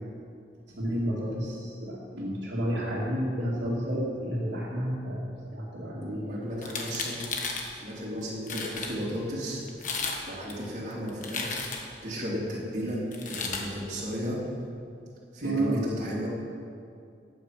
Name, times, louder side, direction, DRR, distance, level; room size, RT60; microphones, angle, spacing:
voice 1, 0.8-6.4 15.4-15.9, right 1 dB, 80° right, -8 dB, 2.3 m, -31 dB
voice 2, 6.2-7.2 7.7-9.6 10.2-14.4 15.3-16.3, equal, 40° right, -7 dB, 3.1 m, -34 dB
sound 1, 6.6-7.7 8.2-8.3 8.5-8.9 9.7-10.2 10.5-12.0 13.1-13.7, left 4 dB, 45° left, 1.5 m, -34 dB
15.0 x 8.8 x 6.0 m, 2.5 s
head